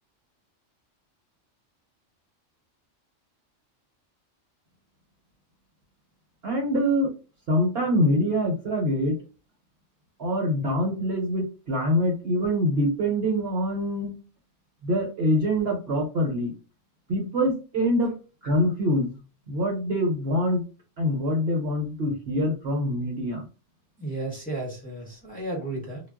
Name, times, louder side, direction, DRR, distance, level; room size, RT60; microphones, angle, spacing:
voice 1, 6.4-7.1 7.5-9.2 10.2-14.1 14.8-16.5 17.1-18.1 18.4-19.1 19.5-20.6 21.0-23.4, equal, 55° right, 0 dB, 1.0 m, -24 dB
voice 2, 24.0-26.0, right 2 dB, 5° left, -2 dB, 0.9 m, -33 dB
2.2 x 2.1 x 3.6 m, 0.32 s
omnidirectional pair, 1.3 m